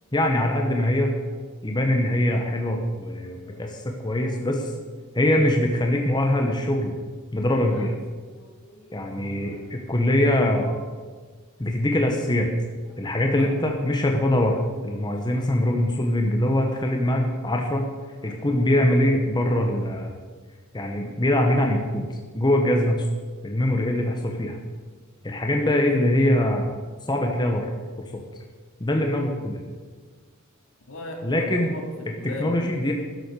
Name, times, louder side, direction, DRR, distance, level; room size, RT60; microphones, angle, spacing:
voice 1, 0.1-1.1 1.6-4.7 5.1-6.9 7.3-7.9 8.9-10.7 11.6-12.5 13.0-17.9 18.2-20.1 20.7-22.1 22.3-23.1 23.4-24.6 25.2-26.7 27.1-27.7 28.0-28.2 28.8-29.6 31.2-31.7 32.2-32.9, left 1 dB, 20° left, 2 dB, 1.0 m, -23 dB
voice 2, 3.3-3.7 4.1-4.4 4.8-4.9 7.6-9.7 11.6-11.7 12.9-13.0 13.4-13.5 14.9-15.4 16.7-16.9 18.2-18.4 30.9-32.8, left 2 dB, 65° left, 2 dB, 2.2 m, -40 dB
12.0 x 7.6 x 6.7 m, 1.5 s
head